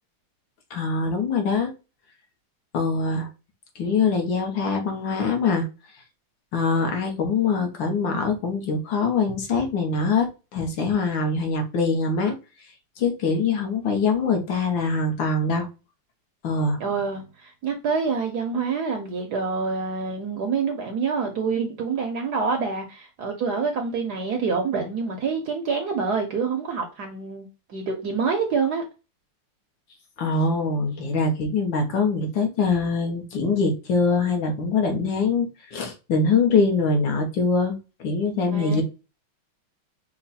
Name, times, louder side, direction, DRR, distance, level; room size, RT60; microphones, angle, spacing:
voice 1, 0.7-1.7 2.7-3.3 3.8-5.7 6.5-12.4 13.0-15.7 16.4-16.8 30.2-38.8, left 4 dB, 65° left, 1.7 m, -23 dB
voice 2, 16.8-28.8 38.5-38.8, right 5 dB, 65° right, 1.0 m, -27 dB
5.6 x 2.3 x 4.1 m
omnidirectional pair, 2.4 m